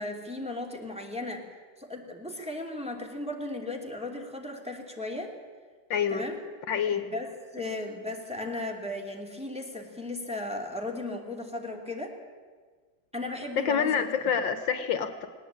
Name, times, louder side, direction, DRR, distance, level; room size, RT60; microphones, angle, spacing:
voice 1, 0.0-1.4 1.8-5.3 6.1-6.4 6.9-12.1 13.1-14.0, left 2 dB, 5° right, 0 dB, 2.6 m, -36 dB
voice 2, 5.9-6.2 6.7-7.1 13.5-15.3, left 7 dB, 75° left, 10 dB, 1.8 m, -27 dB
19.0 x 18.5 x 8.8 m, 1.5 s
omnidirectional pair, 2.1 m